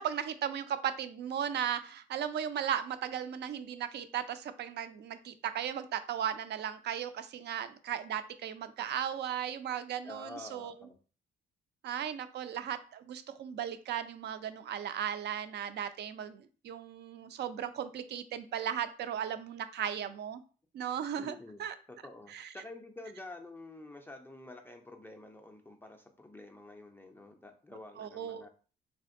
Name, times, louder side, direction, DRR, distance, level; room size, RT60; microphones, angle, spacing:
voice 1, 0.0-10.7 11.8-20.4 20.7-21.8 22.3-22.5 28.0-28.5, right 9 dB, 60° right, 12 dB, 0.4 m, -36 dB
voice 2, 10.0-11.0 21.2-21.6 21.9-28.5, left 2 dB, 10° left, 3 dB, 0.3 m, -49 dB
3.5 x 2.5 x 2.4 m, 0.38 s
cardioid pair, 90°, 20 cm